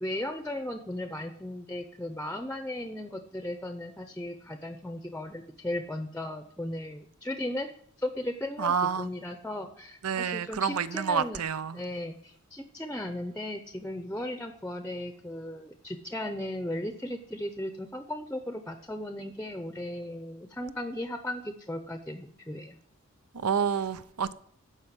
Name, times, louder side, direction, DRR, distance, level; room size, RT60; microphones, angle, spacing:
voice 1, 0.0-7.7 8.0-11.4 11.7-22.8, left 1 dB, 5° left, 0.7 m, -36 dB
voice 2, 8.6-9.1 10.0-11.8 23.3-24.3, right 7 dB, 85° right, 0.7 m, -28 dB
13.0 x 5.4 x 8.1 m
head